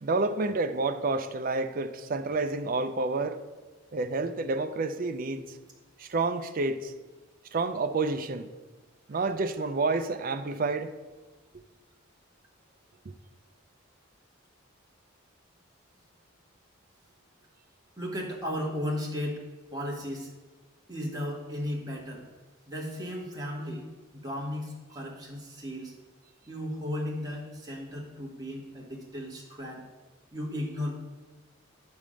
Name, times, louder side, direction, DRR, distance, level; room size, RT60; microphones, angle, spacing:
voice 1, 0.0-3.4 3.9-5.4 6.0-6.9 7.5-8.5 9.1-10.9, right 3 dB, 45° right, 0.4 m, -29 dB
voice 2, 18.0-19.4 19.7-20.3 20.9-22.2 22.7-25.9 26.5-29.9 30.3-31.1, left 1 dB, 20° right, 1.5 m, -35 dB
8.4 x 3.6 x 6.2 m
head